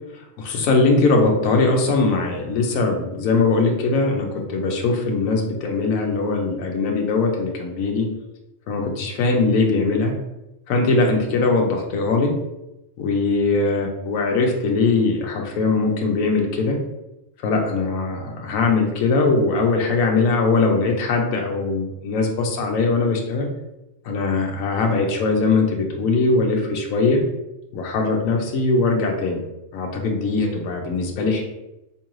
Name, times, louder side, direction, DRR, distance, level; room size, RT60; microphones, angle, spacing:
voice 1, 0.1-8.1 8.7-10.1 10.7-12.3 13.0-16.8 17.4-23.5 24.0-27.2 27.7-29.4 29.7-31.4, left 3 dB, 80° left, 1 dB, 1.1 m, -21 dB
3.7 x 3.0 x 3.0 m, 0.93 s
omnidirectional pair, 1.4 m